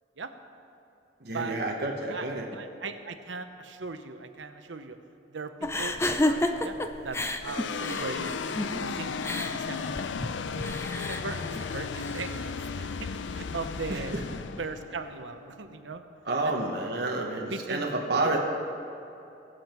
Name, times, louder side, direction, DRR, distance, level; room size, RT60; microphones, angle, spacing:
voice 1, 1.2-2.5 8.9-9.0 13.9-14.2 16.2-18.4, right 2 dB, 60° right, -1 dB, 1.3 m, -30 dB
voice 2, 2.5-5.0 5.3-6.8 7.0-8.3 8.9-9.2 9.5-10.0 10.6-14.1 14.6-16.0 16.4-16.6 17.5-17.8, right 4 dB, 90° right, 8 dB, 0.9 m, -38 dB
sound 1, 5.6-12.4, left 1 dB, 15° left, 0.5 m, -32 dB
sound 2, 5.9-10.5, equal, 40° right, 2.6 m, -49 dB
sound 3, 7.4-16.0, left 5 dB, 80° left, 0.4 m, -35 dB
22.0 x 7.8 x 4.5 m, 2.8 s
head